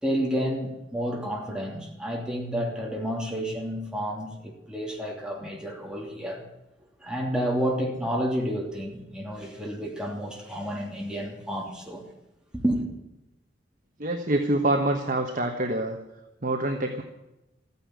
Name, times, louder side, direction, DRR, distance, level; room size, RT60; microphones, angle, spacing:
voice 1, 0.0-6.4 7.0-12.0 12.5-12.8, equal, 5° right, -1 dB, 3.0 m, -30 dB
voice 2, 14.0-16.0 16.4-17.0, right 1 dB, 45° right, 4 dB, 1.3 m, -26 dB
14.5 x 9.9 x 9.7 m, 0.93 s
head